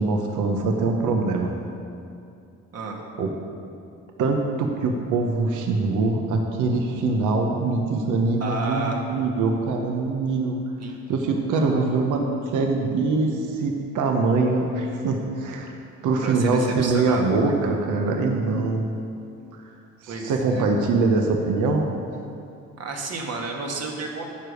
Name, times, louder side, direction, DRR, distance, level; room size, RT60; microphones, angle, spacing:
voice 1, 0.0-1.5 3.2-3.3 4.2-10.6 11.1-12.2 12.5-15.7 16.0-18.9 19.5-19.6 20.0-21.9, right 3 dB, 80° right, 3 dB, 1.0 m, -23 dB
voice 2, 8.4-9.0 10.8-11.0 11.5-12.0 16.2-17.8 20.1-20.9 22.8-24.3, right 3 dB, 55° right, 1 dB, 1.5 m, -32 dB
10.0 x 5.0 x 6.4 m, 2.5 s
cardioid pair, 90°, 30 cm